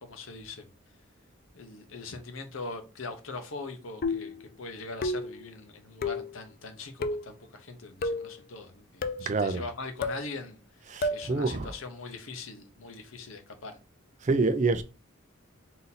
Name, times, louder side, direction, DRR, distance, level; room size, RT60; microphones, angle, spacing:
voice 1, 0.0-0.7 1.5-10.6 11.1-13.8, left 3 dB, 85° left, 0.9 m, -41 dB
sound 1, 4.0-4.4 5.0-5.4 6.0-6.3 7.0-7.3 8.0-8.3 9.0-9.3 10.0-10.3 11.0-11.3, left 2 dB, 45° left, 0.4 m, -31 dB
voice 2, 9.3-9.6 10.9-11.7 14.2-14.8, right 3 dB, 35° right, 0.4 m, -26 dB
3.9 x 2.7 x 4.0 m
head